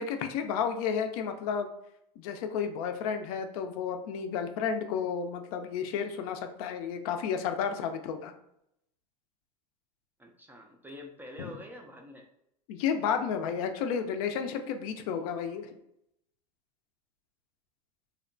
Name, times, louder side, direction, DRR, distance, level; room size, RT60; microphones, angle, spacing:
voice 1, 0.0-1.7 2.2-8.3 11.4-11.5 12.7-15.8, left 7 dB, 65° left, 7 dB, 0.4 m, -32 dB
voice 2, 10.2-12.3, left 1 dB, 10° right, 2 dB, 0.3 m, -46 dB
2.7 x 2.1 x 2.5 m, 0.79 s
hypercardioid pair, 105°, 20 cm